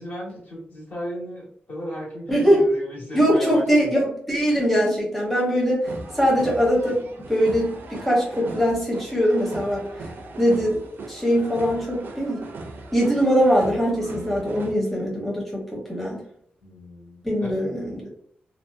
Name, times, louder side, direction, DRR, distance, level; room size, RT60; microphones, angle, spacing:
voice 1, 0.0-3.9 16.6-17.7, equal, 50° left, -4 dB, 1.1 m, -36 dB
voice 2, 2.3-2.7 3.1-9.8 10.4-10.8 11.1-12.5 12.9-16.2 17.2-18.1, equal, ahead, -4 dB, 0.7 m, -22 dB
sound 1, 5.8-14.7, right 3 dB, 65° right, 0.4 m, -39 dB
2.6 x 2.0 x 2.3 m, 0.65 s
wide cardioid pair, 125°, 4 cm